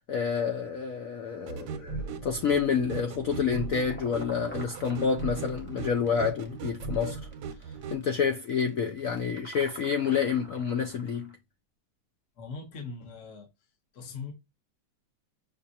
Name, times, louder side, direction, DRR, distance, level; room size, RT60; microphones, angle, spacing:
voice 1, 0.0-7.2 7.9-11.3, left 6 dB, 75° left, 0.7 m, -28 dB
sound 1, 1.5-8.0, right 5 dB, 80° right, 1.4 m, -38 dB
sound 2, 3.2-11.3, right 1 dB, 10° left, 0.7 m, -50 dB
voice 2, 12.4-13.5 13.9-14.3, left 4 dB, 45° left, 1.3 m, -40 dB
6.3 x 2.4 x 2.7 m
omnidirectional pair, 2.1 m